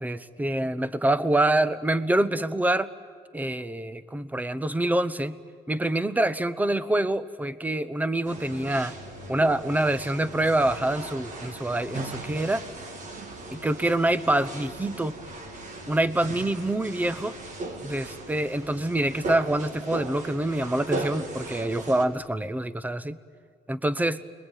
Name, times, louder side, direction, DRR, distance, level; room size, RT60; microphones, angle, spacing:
voice 1, 0.0-2.9 3.3-5.4 5.7-8.9 9.3-12.6 13.5-15.2 15.9-17.3 17.8-23.2 23.7-24.2, right 1 dB, 10° right, 15 dB, 0.9 m, -26 dB
Morning in Hospital MS, 8.2-22.0, right 2 dB, 45° right, 2.8 m, -38 dB
30.0 x 21.5 x 9.1 m, 2.2 s
cardioid pair, 110°, 17 cm